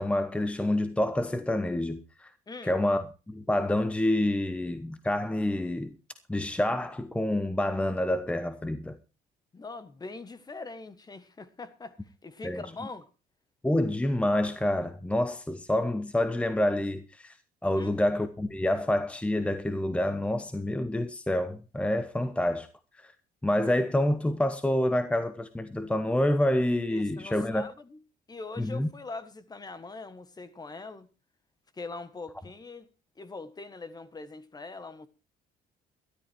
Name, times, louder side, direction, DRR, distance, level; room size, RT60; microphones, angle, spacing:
voice 1, 0.0-2.3 2.6-5.9 6.3-9.0 12.4-12.6 13.6-17.4 17.6-22.7 23.0-23.1 23.4-27.7 28.6-28.9, left 1 dB, 5° left, 1.1 m, -27 dB
voice 2, 2.5-2.8 9.5-12.0 12.2-13.1 17.7-17.9 26.9-28.0 28.3-31.1 31.7-32.9 33.2-35.1, left 3 dB, 25° left, 1.5 m, -42 dB
13.0 x 12.5 x 4.5 m
cardioid pair, 110°, 17 cm